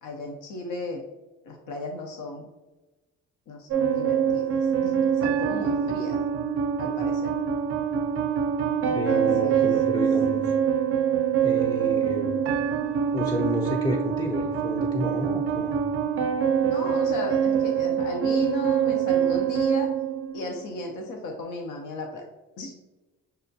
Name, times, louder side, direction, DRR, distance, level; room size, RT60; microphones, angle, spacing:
voice 1, 0.0-1.0 1.5-2.5 3.5-6.2 6.8-7.3 8.8-9.7 16.6-19.9 20.3-22.3 22.6-22.7, left 2 dB, 90° left, 2 dB, 0.6 m, -35 dB
sound 1, 3.7-20.7, right 8 dB, 50° right, 0.4 m, -25 dB
voice 2, 8.9-10.5 11.4-12.5 13.1-15.8, left 1 dB, 15° left, 0 dB, 0.4 m, -31 dB
6.6 x 2.2 x 2.6 m, 1.2 s
cardioid pair, 90°, 30 cm